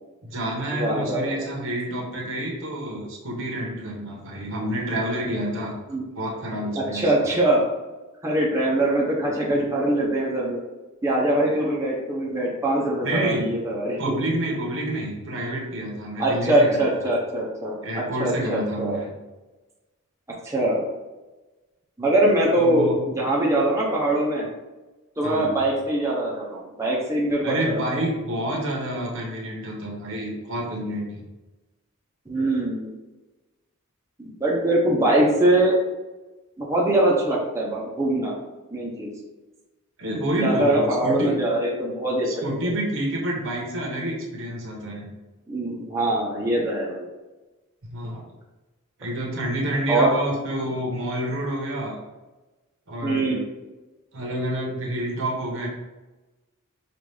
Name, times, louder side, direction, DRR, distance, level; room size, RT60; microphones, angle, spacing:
voice 1, 0.2-5.7 6.1-7.1 11.4-11.6 13.0-13.5 14.0-16.8 17.8-19.1 22.6-23.0 25.2-25.6 27.4-31.2 40.0-41.4 42.2-45.1 47.8-48.2 49.0-52.0 52.9-53.4 54.1-55.7, right 1 dB, 60° right, -1 dB, 1.0 m, -28 dB
voice 2, 0.8-1.5 5.9-6.0 6.7-7.7 8.2-10.6 11.0-14.1 16.2-19.1 20.4-20.9 22.0-24.5 25.2-27.8 32.3-32.9 34.2-35.8 36.6-38.3 38.7-39.1 40.4-42.5 45.5-47.0 49.9-50.1 53.0-53.4, right 1 dB, 15° right, -4 dB, 0.7 m, -22 dB
5.2 x 2.5 x 3.3 m, 1.1 s
head